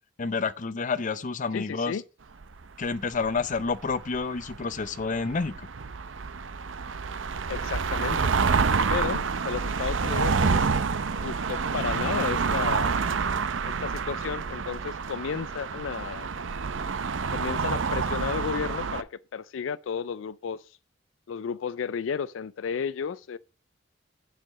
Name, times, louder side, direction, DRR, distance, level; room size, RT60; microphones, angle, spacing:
voice 1, 0.2-2.0 2.8-5.7, left 4 dB, 40° left, 0.6 m, -29 dB
voice 2, 1.5-2.0 7.5-8.3 8.9-10.7 11.2-13.0 13.6-16.5 17.3-20.8 21.3-23.4, left 7 dB, 80° left, 0.4 m, -33 dB
sound 1, 2.4-19.0, right 5 dB, 90° right, 0.7 m, -28 dB
7.6 x 6.4 x 6.5 m
head